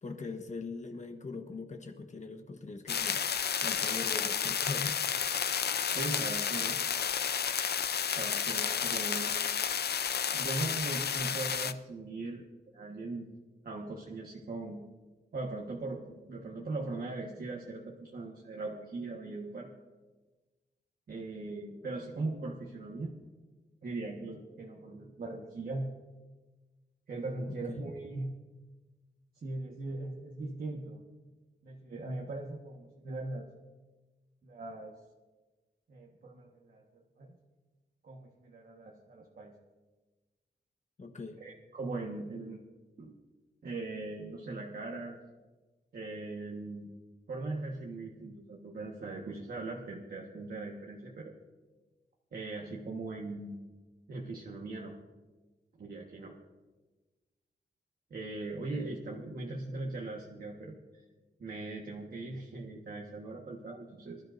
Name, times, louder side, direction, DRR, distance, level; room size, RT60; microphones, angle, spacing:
voice 1, 0.0-5.0 27.5-27.9 41.0-41.4, left 4 dB, 40° left, 6 dB, 1.2 m, -42 dB
sound 1, 2.9-11.7, left 7 dB, 60° left, 0.6 m, -31 dB
voice 2, 5.9-6.8 8.1-9.3 10.3-12.4 12.7-13.3 13.6-14.8 15.3-19.7 21.1-23.1 23.8-25.9 27.1-28.3 29.4-31.0 31.6-33.5 34.4-34.9 35.9-37.4 38.0-39.6 41.4-42.6 43.0-43.1 43.6-45.1 45.9-46.9 47.3-51.3 52.3-53.6 54.1-54.9 55.8-56.4 58.1-60.8 61.4-64.2, right 2 dB, 55° right, -2 dB, 1.4 m, -40 dB
24.5 x 13.0 x 2.6 m, 1.2 s
wide cardioid pair, 175°, 19 cm